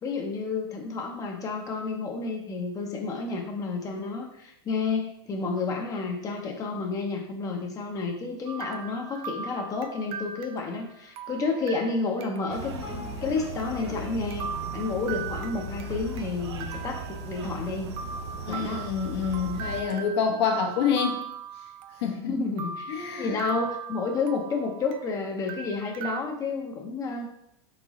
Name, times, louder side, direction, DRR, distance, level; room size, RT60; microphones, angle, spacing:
voice 1, 0.0-14.5 14.7-17.9 18.5-18.9 22.3-27.3, left 4 dB, 25° left, 2 dB, 0.6 m, -31 dB
sound 1, 8.5-12.7 13.0-13.1 13.6-13.7 14.3-16.3 16.6-17.6 18.0-22.2 22.6-25.1 25.5-26.2, right 7 dB, 40° right, 0.3 m, -39 dB
sound 2, 12.5-14.3 14.6-16.2 16.7-16.9, left 2 dB, 55° left, 1.5 m, -42 dB
sound 3, 12.5-19.8, right 2 dB, 85° right, 0.6 m, -37 dB
voice 2, 18.5-21.3 22.0-22.3 22.9-23.4, left 6 dB, 70° left, 2 dB, 1.0 m, -27 dB
3.9 x 3.8 x 2.9 m, 0.74 s
supercardioid pair, 130°, 14 cm